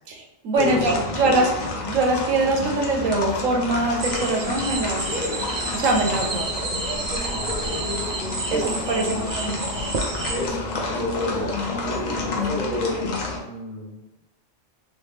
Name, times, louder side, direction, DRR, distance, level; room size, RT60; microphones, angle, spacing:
voice 1, 0.1-1.5 1.9-5.3 5.7-6.7 8.5-8.6 8.9-9.8, right 2 dB, 90° right, 1 dB, 1.1 m, -23 dB
sound 1, 0.5-13.4, left 3 dB, 50° left, 0.6 m, -30 dB
voice 2, 0.6-1.4 7.3-7.9 8.5-9.3 10.3-13.0 13.4-14.2, left 1 dB, 35° left, -6 dB, 1.0 m, -31 dB
sound 2, 4.0-10.5, right 3 dB, 55° right, 0.4 m, -30 dB
sound 3, 4.3-12.4, left 2 dB, 75° left, 1.0 m, -43 dB
3.0 x 2.6 x 3.4 m, 1.0 s
omnidirectional pair, 1.3 m